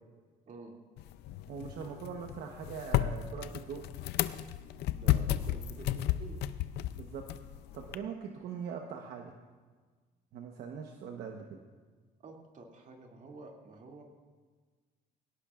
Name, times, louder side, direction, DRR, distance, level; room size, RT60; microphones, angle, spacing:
sound 1, 1.0-8.0, left 12 dB, 80° left, 0.5 m, -33 dB
voice 1, 1.5-3.8 7.0-7.3 7.7-9.3 10.3-11.6, right 6 dB, 70° right, 2 dB, 1.1 m, -42 dB
voice 2, 4.9-6.4 8.3-8.5 12.2-14.0, right 3 dB, 50° right, 0 dB, 2.6 m, -50 dB
20.5 x 17.5 x 2.5 m, 1.5 s
cardioid pair, 110°, 17 cm